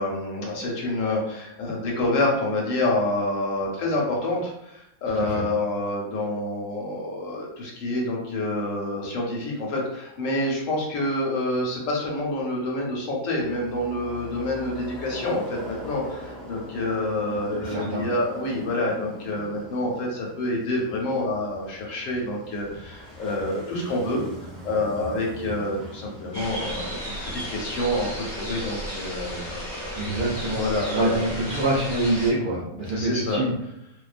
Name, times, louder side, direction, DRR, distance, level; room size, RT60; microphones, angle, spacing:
voice 1, 0.0-24.3 24.6-30.0 30.5-31.4 32.9-33.5, left 1 dB, 70° left, -1 dB, 0.9 m, -27 dB
sound 1, 13.4-27.8, equal, ahead, 0.7 m, -42 dB
voice 2, 17.6-18.0 30.0-30.6 30.9-33.5, right 1 dB, 75° right, -7 dB, 0.4 m, -25 dB
sound 2, 26.3-32.3, equal, 20° left, 1.0 m, -34 dB
2.4 x 2.2 x 2.4 m, 0.80 s
omnidirectional pair, 1.5 m